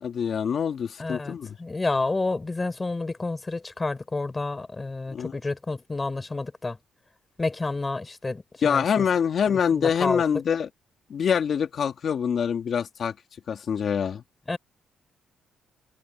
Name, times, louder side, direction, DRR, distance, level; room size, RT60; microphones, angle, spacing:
voice 1, 0.0-1.6 5.1-5.3 8.6-10.7 11.1-13.1 13.5-14.2, left 7 dB, 55° left, 2.7 m, -25 dB
voice 2, 1.0-6.8 7.4-9.1 9.5-10.2 14.5-14.6, left 3 dB, 20° left, 5.6 m, -30 dB
cardioid pair, 90°, 0 cm